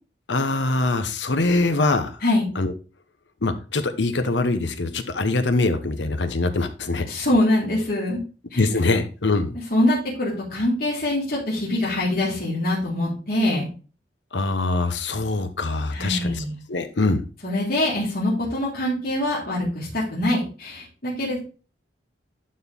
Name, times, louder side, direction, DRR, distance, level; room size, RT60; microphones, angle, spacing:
voice 1, 0.3-2.1 2.5-2.7 3.4-7.1 8.5-9.5 14.3-17.2, left 2 dB, 80° left, 10 dB, 1.0 m, -23 dB
voice 2, 7.1-8.2 8.5-8.6 9.7-13.7 15.9-16.6 17.4-21.4, left 1 dB, 55° left, -6 dB, 3.3 m, -24 dB
11.5 x 4.4 x 3.6 m, 0.36 s
head